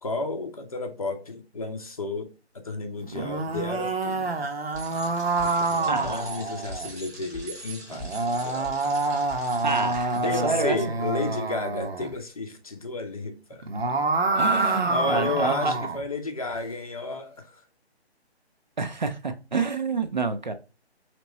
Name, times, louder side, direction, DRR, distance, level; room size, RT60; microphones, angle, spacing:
voice 1, 0.0-2.3 2.6-4.6 5.4-8.1 8.4-8.8 10.2-13.7 14.5-17.6, left 3 dB, 35° left, 0.6 m, -32 dB
sound 1, 3.0-6.9 7.9-12.1 13.5-16.0, right 3 dB, 65° right, 0.8 m, -27 dB
Bicycle, 4.7-10.4, right 2 dB, 15° right, 0.9 m, -42 dB
voice 2, 5.9-6.3 9.6-10.8 14.3-15.7 18.8-20.5, right 4 dB, 45° right, 0.5 m, -28 dB
5.0 x 3.0 x 3.0 m
figure-of-eight pair, 150°, 33 cm